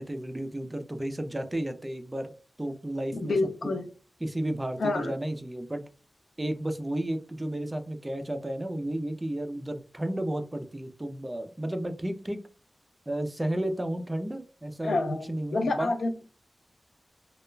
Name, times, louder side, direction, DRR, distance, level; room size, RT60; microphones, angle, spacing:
voice 1, 0.0-2.3 2.6-3.4 3.6-3.7 4.2-5.8 6.4-12.4 13.1-15.0 15.3-15.9, right 1 dB, 15° right, 7 dB, 0.3 m, -32 dB
voice 2, 3.1-3.9 4.8-5.1 14.8-16.2, left 2 dB, 85° left, 7 dB, 0.4 m, -28 dB
2.2 x 2.1 x 3.1 m, 0.36 s
wide cardioid pair, 110°, 0 cm